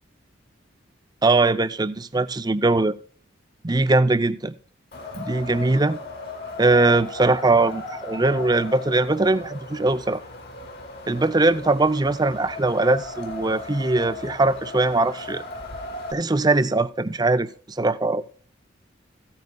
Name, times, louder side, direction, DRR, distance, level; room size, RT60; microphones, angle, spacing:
voice 1, 1.2-3.0 3.6-4.5 5.1-6.0 6.6-10.2 11.1-15.4 16.1-18.2, right 2 dB, 20° right, 0.5 m, -21 dB
Wind, 4.9-16.1, left 2 dB, 50° left, 2.6 m, -37 dB
16.0 x 9.5 x 2.2 m
head